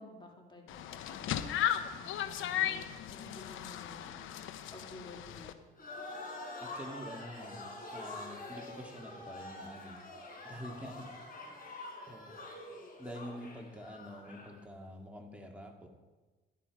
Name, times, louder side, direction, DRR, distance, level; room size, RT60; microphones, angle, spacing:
voice 1, 0.0-4.3 4.7-5.6, left 1 dB, 25° left, 1 dB, 3.0 m, -52 dB
sound 1, 0.7-5.5, left 11 dB, 85° left, 0.9 m, -36 dB
sound 2, 5.8-14.5, left 2 dB, 45° left, 4.5 m, -46 dB
voice 2, 6.6-7.6 7.9-10.1 10.4-11.1 11.4-11.5 12.1-12.3 13.0-15.9, equal, 5° right, 1 dB, 2.3 m, -46 dB
16.0 x 11.5 x 4.8 m, 1.3 s
cardioid pair, 90°, 20 cm